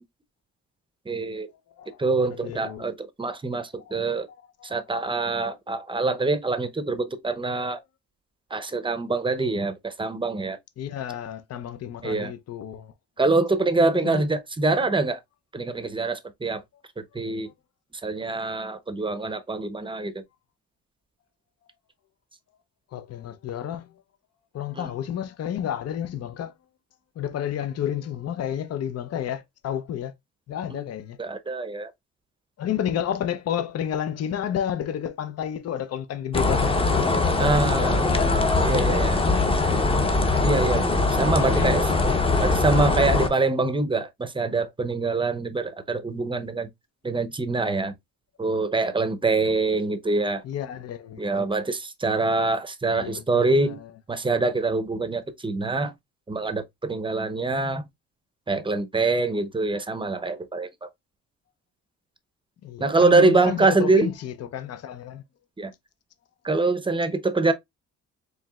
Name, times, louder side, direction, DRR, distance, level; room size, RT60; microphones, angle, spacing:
voice 1, 1.1-1.5 2.0-4.3 4.6-7.8 8.5-10.6 12.0-12.3 13.2-15.2 15.5-16.6 17.1-17.5 18.0-20.2 24.8-24.9 30.7-30.8 31.2-31.9 37.4-38.0 38.6-39.2 40.4-41.8 42.4-46.7 47.0-47.9 48.4-50.4 51.2-53.8 54.1-55.9 56.3-57.8 58.5-60.9 62.8-64.1 65.6-65.7 66.4-67.5, right 3 dB, 15° right, 0.7 m, -24 dB
voice 2, 1.8-2.9 3.7-4.4 8.7-8.8 10.8-12.9 14.0-14.2 14.6-14.7 17.4-17.5 22.9-23.9 24.5-26.5 27.2-30.1 30.5-31.2 32.6-39.7 41.2-43.3 50.4-51.5 53.0-53.9 62.6-65.2, left 9 dB, 55° left, 0.6 m, -31 dB
sound 1, 36.3-43.3, left 3 dB, 20° left, 0.8 m, -22 dB
4.7 x 3.1 x 2.3 m
cardioid pair, 90°, 30 cm